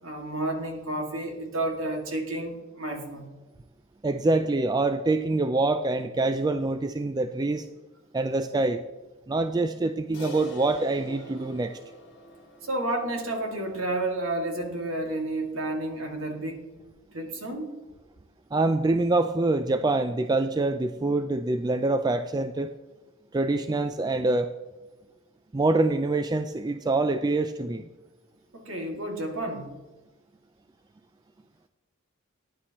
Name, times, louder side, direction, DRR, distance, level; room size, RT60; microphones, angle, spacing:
voice 1, 0.0-3.3 12.6-16.7 17.1-17.7 28.5-29.7, right 1 dB, 65° right, 2 dB, 2.2 m, -31 dB
voice 2, 4.0-7.7 8.1-8.8 9.3-11.8 18.5-22.7 23.3-24.5 25.5-27.9, right 2 dB, 20° right, 9 dB, 0.3 m, -25 dB
Crash cymbal, 10.1-14.7, right 1 dB, 50° left, 2.4 m, -44 dB
14.0 x 10.0 x 3.0 m, 1.2 s
head